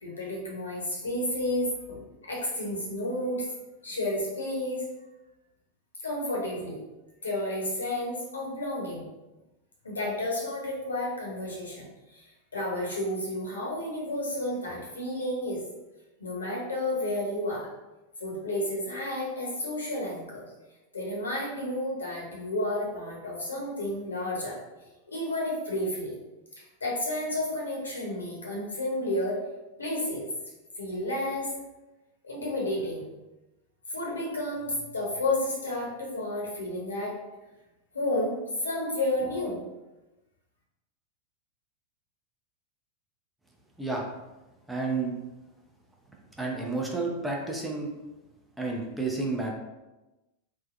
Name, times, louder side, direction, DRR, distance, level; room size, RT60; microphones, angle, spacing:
voice 1, 0.0-3.4 3.8-4.8 6.0-6.8 7.2-9.1 9.8-12.3 12.5-15.6 16.2-17.7 18.2-20.4 20.9-24.6 25.1-26.1 26.6-29.4 29.8-30.3 30.8-31.5 32.2-33.1 33.9-37.2 37.9-39.6, left 1 dB, 75° left, -3 dB, 0.9 m, -31 dB
voice 2, 44.7-45.1 46.4-47.9 48.6-49.5, right 3 dB, 5° right, -1 dB, 0.5 m, -30 dB
3.3 x 2.1 x 2.5 m, 1.0 s
figure-of-eight pair, 90°, 0 cm